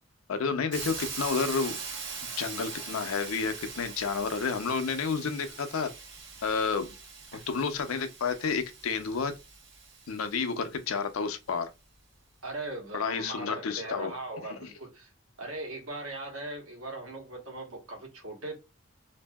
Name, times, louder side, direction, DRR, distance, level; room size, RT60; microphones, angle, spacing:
voice 1, 0.3-1.8 2.4-5.9 6.4-6.9 7.5-9.4 10.1-11.7 12.9-14.1, left 5 dB, 85° left, 0.5 m, -30 dB
Hiss, 0.7-10.6, right 5 dB, 55° right, 1.0 m, -42 dB
voice 2, 12.4-15.1 15.4-18.6, right 2 dB, 85° right, 1.2 m, -39 dB
2.6 x 2.6 x 2.2 m
head